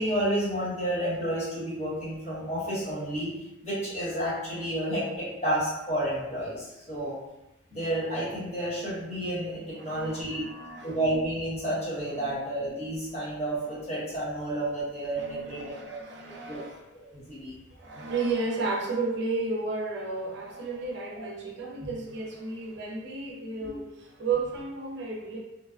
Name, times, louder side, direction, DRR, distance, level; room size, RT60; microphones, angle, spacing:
voice 1, 0.0-3.3 3.6-7.1 7.7-10.4 10.8-15.7 16.5-16.6 16.9-17.5 21.2-21.3 21.8-21.9 23.6-23.7, right 1 dB, 30° left, -10 dB, 1.4 m, -30 dB
voice 2, 9.8-10.9 12.2-12.4 15.2-16.8 17.7-25.4, right 3 dB, 55° right, -2 dB, 0.5 m, -33 dB
3.3 x 2.1 x 2.4 m, 0.97 s
head